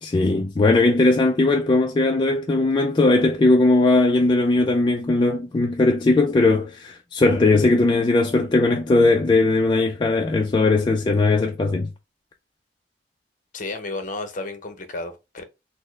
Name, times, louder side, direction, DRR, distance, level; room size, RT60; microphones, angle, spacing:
voice 1, 0.0-11.9, left 2 dB, 25° left, 0.3 m, -19 dB
voice 2, 13.5-15.4, left 2 dB, 50° left, 0.7 m, -32 dB
4.1 x 2.0 x 3.1 m
head